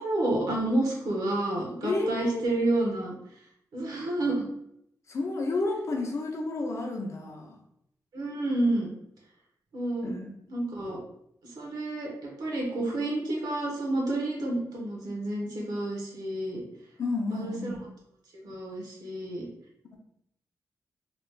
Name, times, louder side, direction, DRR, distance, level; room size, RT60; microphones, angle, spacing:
voice 1, 0.0-3.1 3.7-4.5 8.1-8.9 9.7-10.1 10.5-11.0 11.4-16.6 17.3-17.8 18.3-19.5, right 1 dB, 70° right, -2 dB, 0.9 m, -30 dB
voice 2, 1.8-2.4 5.1-7.5 10.0-10.3 17.0-17.8, left 2 dB, 45° left, 2 dB, 0.6 m, -31 dB
3.0 x 2.3 x 3.2 m, 0.76 s
wide cardioid pair, 155°, 7 cm